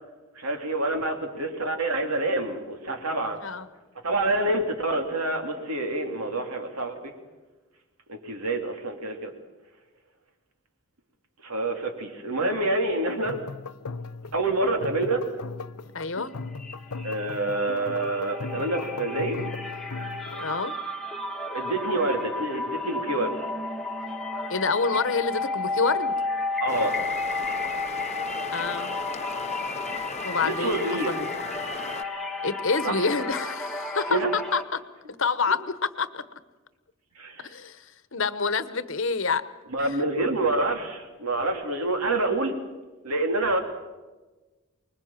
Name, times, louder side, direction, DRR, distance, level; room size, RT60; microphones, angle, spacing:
voice 1, 0.3-3.4 4.0-7.1 8.1-9.3 11.4-13.4 14.3-15.2 17.0-19.4 21.5-23.4 24.1-24.2 26.6-26.9 30.4-31.2 32.8-33.1 34.1-34.3 37.1-37.6 39.7-42.6 43.0-43.6, right 2 dB, 85° right, 4 dB, 3.2 m, -27 dB
sound 1, 13.1-20.7, left 3 dB, 85° left, 0.7 m, -38 dB
voice 2, 15.9-16.3 20.4-20.8 24.5-26.2 28.5-28.9 30.2-31.3 32.4-34.8 35.2-36.3 37.4-37.8 38.1-39.4, left 4 dB, 60° left, 14 dB, 1.0 m, -27 dB
sound 2, 16.2-16.3 16.5-34.6, left 2 dB, ahead, 1.4 m, -32 dB
sound 3, 26.7-32.0, left 4 dB, 30° left, 0.7 m, -37 dB
25.0 x 21.0 x 7.4 m, 1.2 s
head